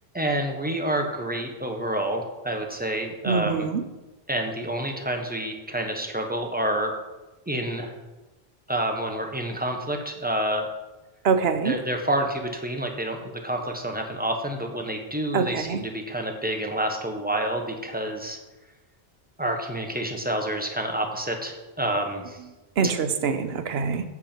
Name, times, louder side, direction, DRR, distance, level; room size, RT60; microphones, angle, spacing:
voice 1, 0.1-3.7 4.3-6.9 7.5-7.9 8.7-10.7 11.6-18.4 19.4-22.4 22.8-22.9, right 1 dB, 10° right, 3 dB, 1.1 m, -28 dB
voice 2, 3.3-3.8 11.2-11.7 15.3-15.8 22.8-24.0, right 5 dB, 75° right, 9 dB, 1.0 m, -24 dB
8.4 x 6.9 x 4.4 m, 1.1 s
omnidirectional pair, 1.1 m